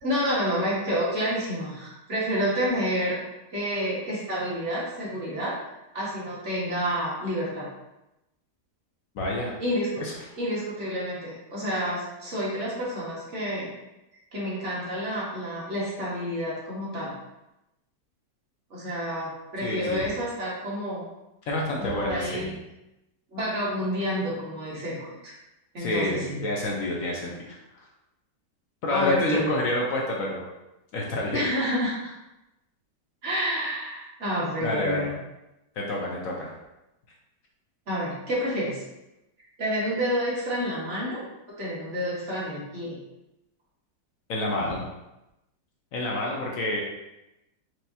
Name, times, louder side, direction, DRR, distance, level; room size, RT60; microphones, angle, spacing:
voice 1, 0.0-3.2 3.5-5.6 5.9-7.7 9.6-9.9 10.4-13.7 14.3-17.1 18.7-21.0 21.8-22.5 23.3-25.0 25.2-25.3 25.7-26.4 28.9-29.5 31.3-32.1 33.2-35.2 37.9-38.8 39.6-41.2 41.6-43.0, equal, 45° right, -7 dB, 1.4 m, -29 dB
voice 2, 9.1-9.5 10.0-10.1 19.6-20.1 21.5-22.5 25.8-27.8 28.8-30.4 30.9-31.5 34.6-35.1 35.8-36.5 44.3-44.9 45.9-46.8, left 1 dB, 65° left, -2 dB, 0.9 m, -28 dB
4.7 x 2.9 x 2.7 m, 0.94 s
omnidirectional pair, 1.9 m